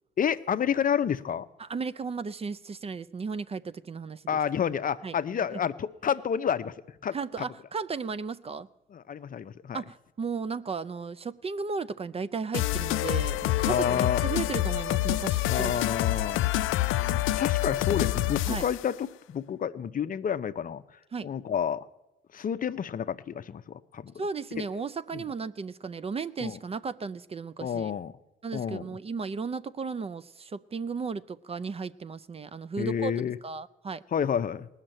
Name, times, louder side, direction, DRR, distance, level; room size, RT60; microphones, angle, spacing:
voice 1, 0.2-1.5 4.3-6.7 7.0-7.1 8.9-9.8 13.7-14.2 15.5-16.5 17.1-20.8 21.2-21.9 22.3-24.1 26.4-26.6 27.6-28.1 28.5-28.9 32.8-33.4 34.1-34.7, left 8 dB, 45° left, 0.6 m, -29 dB
voice 2, 1.6-4.2 5.0-5.2 5.5-5.6 7.1-8.7 9.7-15.7 18.4-18.6 21.1-21.3 24.2-27.9 28.4-33.1 33.4-34.0, right 5 dB, 30° right, 0.4 m, -35 dB
sound 1, 12.5-18.8, left 15 dB, 90° left, 0.4 m, -27 dB
19.0 x 6.5 x 9.0 m
cardioid pair, 90°, 20 cm